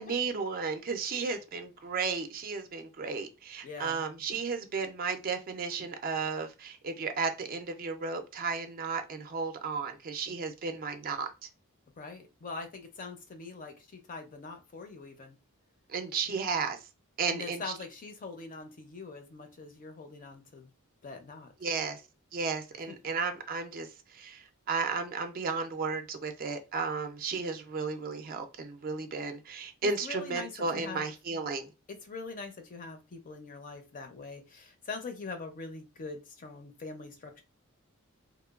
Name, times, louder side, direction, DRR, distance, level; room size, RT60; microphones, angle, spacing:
voice 1, 0.0-11.3 15.9-16.8 17.2-17.6 21.6-22.0 22.3-23.9 24.1-31.7, right 4 dB, 40° right, 0.3 m, -34 dB
voice 2, 3.6-4.0 12.0-13.8 14.1-15.4 17.3-20.7 21.0-21.5 30.0-31.1 31.9-37.4, left 4 dB, 40° left, 0.4 m, -43 dB
2.9 x 2.2 x 2.3 m
head